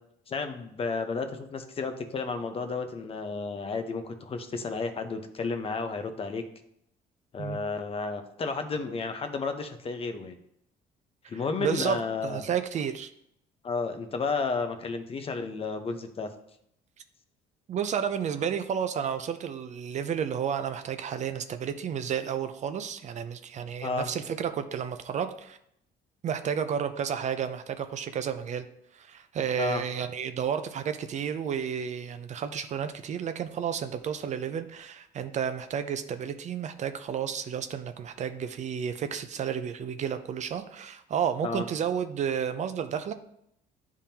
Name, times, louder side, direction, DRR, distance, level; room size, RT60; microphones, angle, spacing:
voice 1, 0.3-6.4 7.3-10.4 11.3-12.4 13.6-16.3 23.8-24.1 29.6-29.8 41.4-41.6, left 4 dB, 35° left, 7 dB, 0.7 m, -32 dB
voice 2, 11.3-12.0 12.2-13.1 17.7-25.6 26.2-28.7 28.9-43.1, right 8 dB, 45° right, 9 dB, 0.5 m, -31 dB
10.0 x 3.6 x 2.8 m, 0.75 s
cardioid pair, 110°, 17 cm